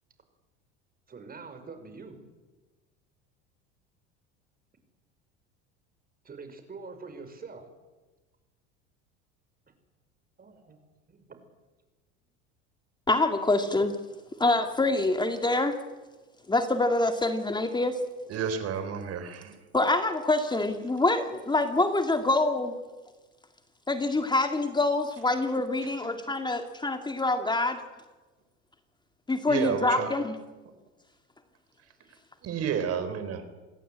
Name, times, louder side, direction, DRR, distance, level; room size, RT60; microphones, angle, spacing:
voice 1, 1.1-2.2 6.2-7.7 10.4-10.8 11.1-11.5 27.6-27.8, right 4 dB, 30° right, 8 dB, 5.6 m, -45 dB
voice 2, 13.1-14.0 14.4-15.8 16.5-18.0 19.7-22.8 23.9-27.8 29.3-30.4, left 2 dB, 15° left, 7 dB, 2.1 m, -25 dB
voice 3, 18.3-19.5 29.5-30.1 32.4-33.4, right 7 dB, 50° right, 10 dB, 4.0 m, -31 dB
28.5 x 17.0 x 8.8 m, 1.2 s
supercardioid pair, 100°, 32 cm